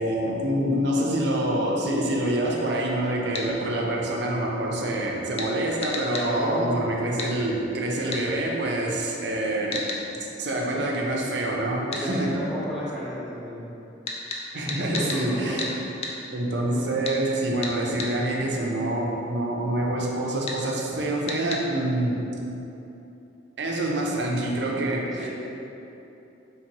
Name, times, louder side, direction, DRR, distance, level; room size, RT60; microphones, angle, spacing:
voice 1, 0.0-9.8 10.1-12.4 14.5-15.6 16.3-22.2 23.6-25.3, right 1 dB, 65° right, -1 dB, 0.6 m, -26 dB
sound 1, 3.3-3.5 5.4-5.5 5.8-6.3 7.2-7.3 8.1-8.2 9.7-10.0 11.9-12.1 14.1-15.2 15.6-15.7 16.0-16.2 17.0-17.2 17.6-18.1 20.5-20.6 21.3-21.6, left 3 dB, 35° left, 0.4 m, -32 dB
voice 2, 6.1-6.7 10.7-10.9 11.9-13.6 14.6-15.5 16.7-16.9 25.2-25.3, equal, ahead, -11 dB, 1.1 m, -32 dB
4.5 x 3.3 x 2.8 m, 3.0 s
head